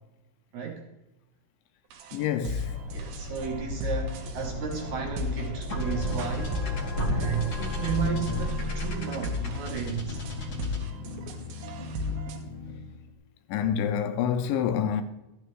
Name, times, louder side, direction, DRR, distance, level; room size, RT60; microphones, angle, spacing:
voice 1, 0.5-0.9 2.9-6.6 7.1-10.2, right 6 dB, 65° right, 2.1 m, -33 dB
sound 1, 1.9-12.4, left 2 dB, 80° right, 2.8 m, -37 dB
voice 2, 2.1-2.8 13.5-15.0, left 8 dB, 80° left, 2.3 m, -27 dB
sound 2, 2.6-8.5, left 1 dB, 65° left, 2.5 m, -37 dB
sound 3, 5.7-13.0, left 2 dB, 45° left, 1.6 m, -33 dB
13.5 x 9.0 x 3.1 m
omnidirectional pair, 4.2 m